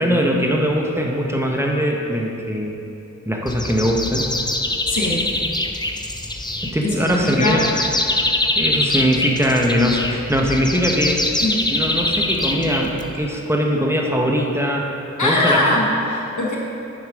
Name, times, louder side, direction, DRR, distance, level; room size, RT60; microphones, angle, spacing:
voice 1, 0.0-2.8 3.3-4.3 6.6-7.6 8.6-11.2 11.7-14.9 15.2-15.6, equal, 10° right, 0 dB, 1.0 m, -21 dB
sound 1, 3.5-13.3, left 2 dB, 15° left, 0.5 m, -24 dB
voice 2, 4.9-5.2 6.9-7.6 11.4-11.6 15.2-16.6, left 1 dB, 80° left, -3 dB, 1.2 m, -21 dB
7.0 x 6.4 x 5.2 m, 2.8 s
wide cardioid pair, 45°, 30 cm